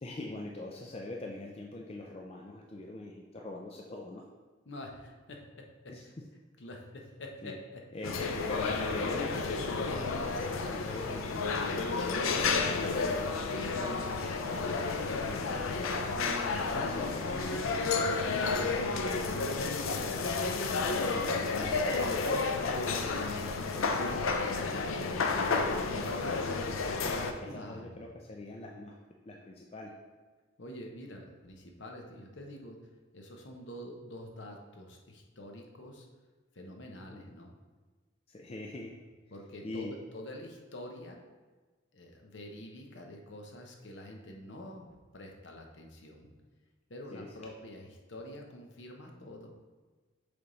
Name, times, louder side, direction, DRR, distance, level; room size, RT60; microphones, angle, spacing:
voice 1, 0.0-4.2 5.9-6.0 7.4-7.6 7.9-8.2 8.5-13.2 13.5-13.9 15.3-15.7 16.5-19.4 19.8-20.2 20.8-22.0 23.0-23.3 23.6-26.8 27.5-29.0 29.2-29.9 37.1-37.4 38.3-38.9 39.6-39.9 47.1-47.3, left 2 dB, 30° left, 0 dB, 0.4 m, -43 dB
voice 2, 4.7-6.1 6.6-7.8 27.3-28.1 30.6-36.1 36.5-37.5 39.3-41.2 41.9-46.3 46.9-49.5, left 1 dB, 60° left, 2 dB, 0.8 m, -47 dB
sound 1, 8.0-27.3, left 4 dB, 85° left, 0.5 m, -31 dB
6.8 x 3.5 x 3.9 m, 1.3 s
head